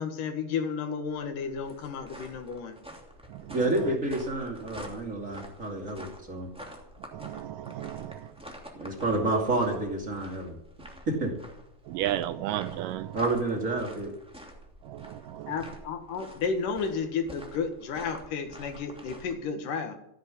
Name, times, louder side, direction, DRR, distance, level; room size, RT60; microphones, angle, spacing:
voice 1, 0.0-2.8 15.5-20.0, left 5 dB, 70° left, 7 dB, 3.0 m, -32 dB
sound 1, 1.0-19.4, equal, ahead, 2.1 m, -48 dB
voice 2, 3.5-6.5 8.7-10.6 11.1-11.3 13.1-14.1, right 2 dB, 25° right, 1 dB, 2.6 m, -29 dB
voice 3, 7.1-8.3 11.9-13.2 14.9-15.5, right 12 dB, 80° right, 12 dB, 2.2 m, -34 dB
15.0 x 8.1 x 9.9 m, 0.80 s
omnidirectional pair, 4.0 m